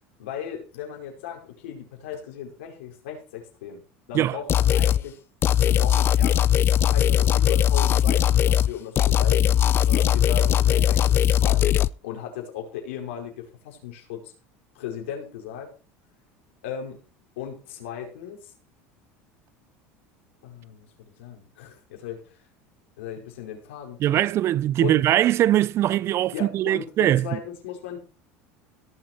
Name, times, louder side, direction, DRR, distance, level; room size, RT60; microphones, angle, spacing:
voice 1, 0.2-3.8 4.1-5.2 5.7-11.6 12.0-14.3 14.7-15.7 16.6-17.0 17.4-18.5 20.4-22.4 23.0-24.3 24.8-25.0 26.3-28.0, left 8 dB, 90° left, 5.1 m, -37 dB
sound 1, 4.5-5.0 5.4-8.7 9.0-11.9, left 10 dB, 40° left, 0.5 m, -19 dB
voice 2, 24.0-27.4, right 12 dB, 45° right, 0.6 m, -21 dB
17.5 x 7.0 x 4.5 m
supercardioid pair, 110°, 6 cm